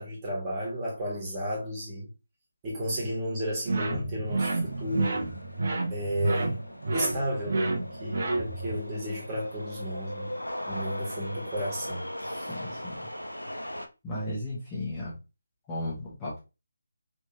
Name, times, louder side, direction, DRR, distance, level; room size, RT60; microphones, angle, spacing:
voice 1, 0.0-2.1 2.6-5.2 5.9-6.6 6.8-10.3 10.7-12.5, equal, 20° right, 1.6 m, -33 dB
sound 1, 3.7-8.8, right 2 dB, 45° right, 0.8 m, -30 dB
sound 2, 4.2-13.9, left 1 dB, 90° left, 0.6 m, -39 dB
voice 2, 12.5-13.1 14.0-15.1 15.7-16.4, left 1 dB, 10° left, 1.3 m, -35 dB
3.4 x 3.1 x 3.0 m
figure-of-eight pair, 155°, 0 cm